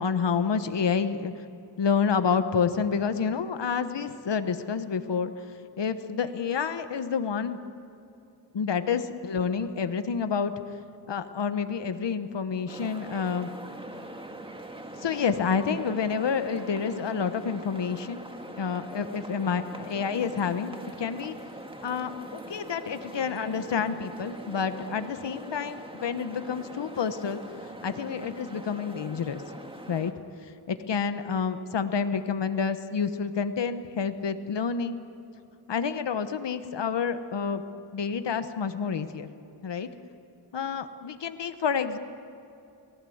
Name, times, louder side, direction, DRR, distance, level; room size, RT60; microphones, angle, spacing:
voice 1, 0.0-1.3 1.8-5.3 5.8-7.6 8.5-10.5 11.1-13.5 15.0-18.2 18.6-21.3 21.8-27.4 27.8-29.4 29.9-30.1 30.7-35.0 35.7-37.6 37.9-39.3 39.6-39.9 40.5-42.0, left 6 dB, 70° left, 10 dB, 1.1 m, -29 dB
sound 1, 12.7-30.1, right 1 dB, 10° right, 1.9 m, -42 dB
28.0 x 18.5 x 7.9 m, 2.6 s
wide cardioid pair, 90°, 44 cm